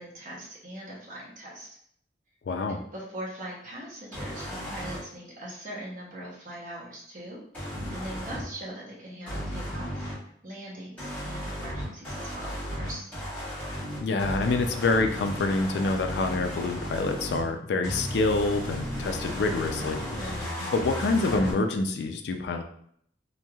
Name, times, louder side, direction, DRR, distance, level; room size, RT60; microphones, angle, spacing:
voice 1, 0.0-1.7 2.7-10.1 10.4-13.0 20.2-20.7, right 1 dB, 45° right, -4 dB, 0.9 m, -41 dB
voice 2, 2.5-2.8 14.0-20.4 20.7-22.6, left 3 dB, 70° left, 6 dB, 0.3 m, -27 dB
sound 1, 4.1-5.0 7.5-8.4 9.3-10.1 11.0-17.4 17.8-21.5, equal, 10° left, 1.5 m, -34 dB
3.1 x 2.6 x 2.3 m, 0.66 s
head